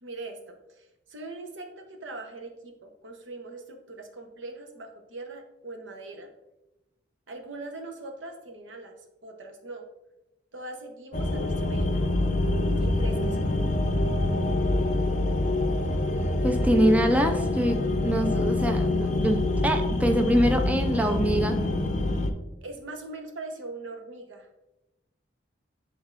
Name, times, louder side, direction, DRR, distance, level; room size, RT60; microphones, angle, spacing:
voice 1, 0.0-6.3 7.3-9.0 9.2-9.8 10.5-12.1 12.8-13.5 22.6-24.5, right 2 dB, 80° right, 4 dB, 0.9 m, -41 dB
sound 1, 11.1-22.3, left 2 dB, 40° left, 0.5 m, -25 dB
voice 2, 16.4-21.6, right 1 dB, 10° right, 4 dB, 0.4 m, -24 dB
10.5 x 3.6 x 2.5 m, 0.96 s
head